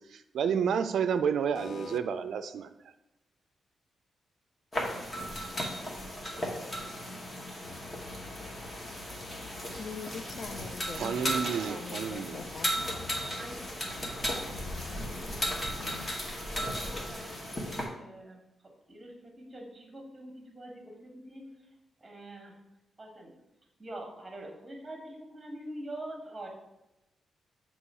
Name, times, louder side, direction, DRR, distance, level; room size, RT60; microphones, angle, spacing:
voice 1, 0.0-2.7 10.9-12.4, right 7 dB, 75° right, 10 dB, 0.3 m, -30 dB
voice 2, 1.6-2.0 9.7-13.3, left 5 dB, 50° left, 10 dB, 0.3 m, -43 dB
sound 1, 4.7-17.8, equal, 25° left, 1.0 m, -36 dB
sound 2, 7.6-16.1, left 4 dB, 80° left, 0.7 m, -49 dB
voice 3, 13.1-14.3 14.6-16.1 16.8-18.4 18.9-21.4 22.0-22.6 23.0-23.3 23.8-26.5, right 1 dB, 15° right, 1 dB, 1.2 m, -45 dB
6.3 x 3.0 x 5.4 m, 0.92 s
wide cardioid pair, 165°, 0 cm